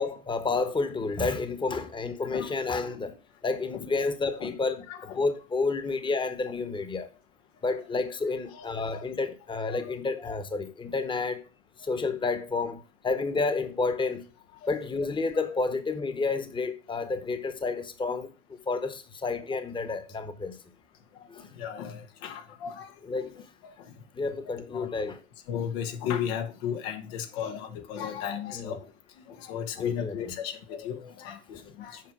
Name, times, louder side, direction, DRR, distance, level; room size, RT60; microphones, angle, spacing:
voice 1, 0.0-3.1 3.4-7.1 7.6-11.4 11.8-14.3 14.7-20.6 21.3-21.5 23.0-23.5 24.1-25.2 28.5-28.8 29.8-30.3, left 3 dB, 15° left, 1.1 m, -30 dB
voice 2, 4.9-5.2 8.5-9.1 9.8-9.9 10.2-10.3 14.6-14.7 15.3-15.4 19.5-19.9 21.6-22.9 23.3-23.4 23.8-23.9 24.5-24.9 25.5-28.8 29.3-32.0, left 8 dB, 85° left, 1.4 m, -35 dB
7.5 x 4.7 x 6.0 m
supercardioid pair, 105°, 29 cm